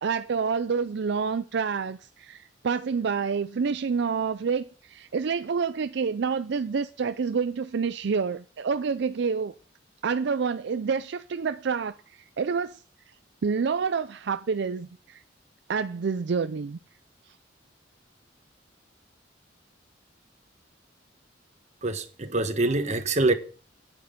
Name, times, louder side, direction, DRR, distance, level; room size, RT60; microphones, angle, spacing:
voice 1, 0.0-9.5 10.0-12.8 13.4-15.2 15.7-16.8, right 5 dB, 65° right, 0.4 m, -28 dB
voice 2, 21.8-23.3, right 2 dB, 40° right, 1.3 m, -25 dB
9.4 x 9.1 x 5.2 m
head